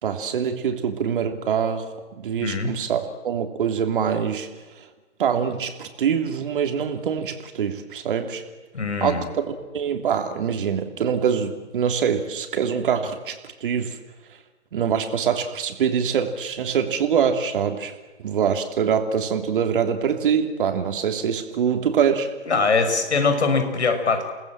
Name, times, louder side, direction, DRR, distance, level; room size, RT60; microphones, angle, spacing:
voice 1, 0.0-4.5 4.8-4.9 5.2-8.4 9.0-14.0 14.7-17.9 18.2-22.3, right 7 dB, 45° right, 6 dB, 3.2 m, -24 dB
voice 2, 2.4-2.7 8.7-9.2 22.5-24.3, left 4 dB, 65° left, 7 dB, 6.1 m, -22 dB
29.5 x 19.5 x 7.6 m, 1.3 s
figure-of-eight pair, 145°, 36 cm